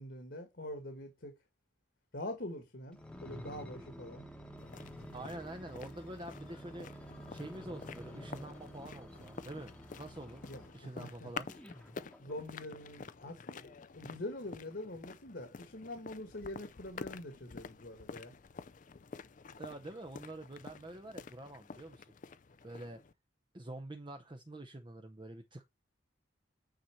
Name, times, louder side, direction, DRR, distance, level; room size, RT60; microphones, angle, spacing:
voice 1, 0.0-1.3 2.1-4.3 10.5-11.3 12.2-18.3, left 1 dB, 60° left, 1.6 m, -44 dB
sound 1, 2.9-10.9 11.5-12.8 13.4-13.5, equal, 5° left, 1.1 m, -50 dB
sound 2, 4.6-23.1, left 4 dB, 45° left, 0.5 m, -49 dB
voice 2, 5.1-10.4 10.7-11.5 19.6-22.1 22.6-23.0 23.5-25.7, right 1 dB, 25° right, 0.7 m, -46 dB
9.2 x 4.2 x 4.5 m
head